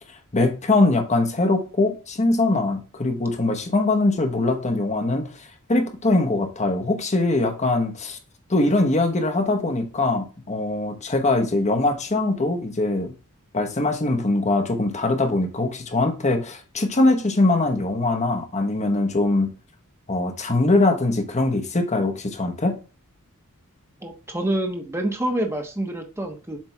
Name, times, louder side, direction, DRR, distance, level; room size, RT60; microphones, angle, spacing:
voice 1, 0.3-8.2 8.5-13.1 13.5-19.5 20.1-22.8, left 2 dB, 30° left, 1.1 m, -22 dB
voice 2, 24.0-26.6, right 1 dB, 10° right, 1.1 m, -27 dB
7.4 x 3.5 x 4.6 m
head